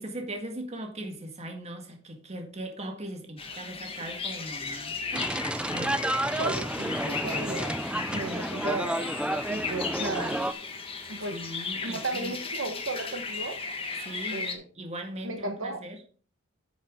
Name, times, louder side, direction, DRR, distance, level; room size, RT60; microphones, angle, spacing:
voice 1, 0.0-6.3 7.0-7.4 11.3-12.3 14.0-14.5 14.7-16.0, right 1 dB, 30° right, 1.8 m, -39 dB
sound 1, 3.4-14.5, left 4 dB, 25° left, 1.4 m, -36 dB
sound 2, 5.1-10.5, right 1 dB, 5° right, 0.4 m, -31 dB
voice 2, 6.1-7.7 8.1-8.9 9.5-10.4 11.1-11.3 11.8-13.6 14.3-14.6 15.2-15.8, right 2 dB, 65° right, 1.4 m, -34 dB
10.0 x 7.2 x 3.7 m
head